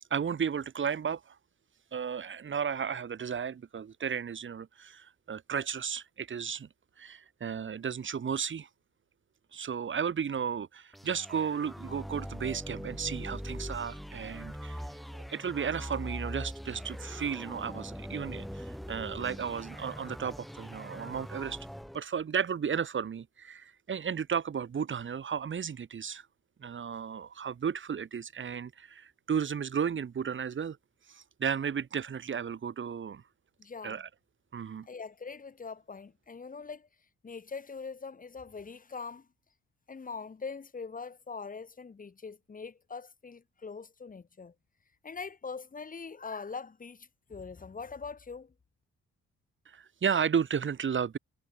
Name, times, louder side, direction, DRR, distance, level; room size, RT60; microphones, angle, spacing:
voice 1, 0.1-1.3 1.9-6.7 7.0-8.7 9.5-14.8 15.3-21.7 21.9-26.2 26.6-30.8 31.1-33.2 33.8-34.1 34.5-34.9 49.7-51.2, right 7 dB, 40° right, 1.5 m, -34 dB
sound 1, 10.9-22.0, equal, ahead, 5.0 m, -42 dB
voice 2, 33.6-34.0 34.9-36.9 37.2-39.3 39.9-44.5 45.0-48.5, left 5 dB, 25° left, 1.4 m, -42 dB
cardioid pair, 90°, 30 cm